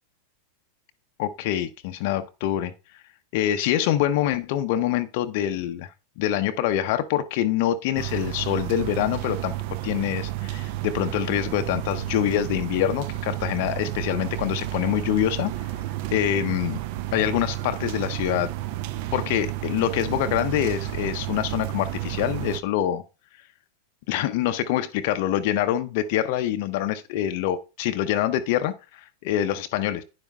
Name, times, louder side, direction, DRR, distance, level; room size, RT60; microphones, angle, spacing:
voice 1, 1.2-2.7 3.3-5.9 6.2-9.5 9.8-15.5 16.1-16.8 17.1-18.5 19.1-23.0 24.1-30.0, left 12 dB, 50° left, 0.6 m, -25 dB
sound 1, 7.9-22.6, right 15 dB, 45° right, 0.6 m, -31 dB
11.5 x 9.5 x 2.2 m
figure-of-eight pair, 90°, 0 cm